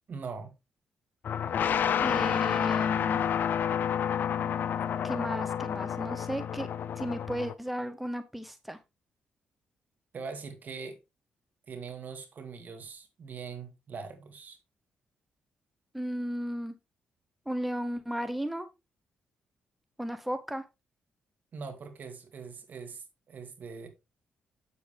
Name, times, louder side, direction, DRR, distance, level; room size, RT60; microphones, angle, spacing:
voice 1, 0.1-0.5 10.1-11.0 11.7-14.6 21.5-23.9, right 5 dB, 55° right, 2.2 m, -42 dB
sound 1, 1.2-7.5, left 8 dB, 65° left, 0.5 m, -29 dB
voice 2, 2.0-3.2 5.0-6.7 6.9-8.8 15.9-16.7 17.5-18.7 20.0-20.6, equal, 5° right, 0.8 m, -34 dB
7.9 x 7.1 x 3.3 m
cardioid pair, 70°, 3 cm